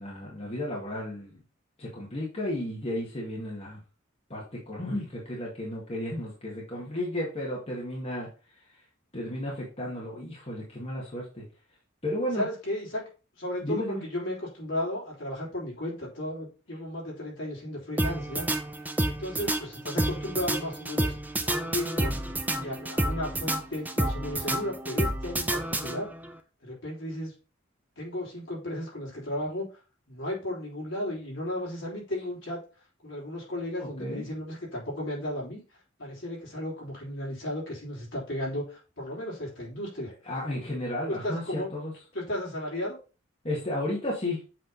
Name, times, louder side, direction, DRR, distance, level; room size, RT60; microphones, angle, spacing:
voice 1, 0.0-1.4 1.8-3.8 4.3-8.3 9.1-11.4 12.0-12.5 13.6-14.0 33.8-34.2 40.3-41.9 43.4-44.4, left 1 dB, 30° left, -5 dB, 1.9 m, -33 dB
voice 2, 12.4-13.1 13.4-18.5 19.0-21.1 21.4-22.1 22.5-26.1 26.6-27.3 28.0-29.7 30.1-32.6 33.0-35.6 36.0-40.1 41.1-41.7 42.1-43.0, left 1 dB, 65° left, -5 dB, 3.6 m, -34 dB
sound 1, 18.0-26.3, right 1 dB, 10° right, 0.6 m, -30 dB
7.6 x 3.7 x 4.1 m, 0.34 s
head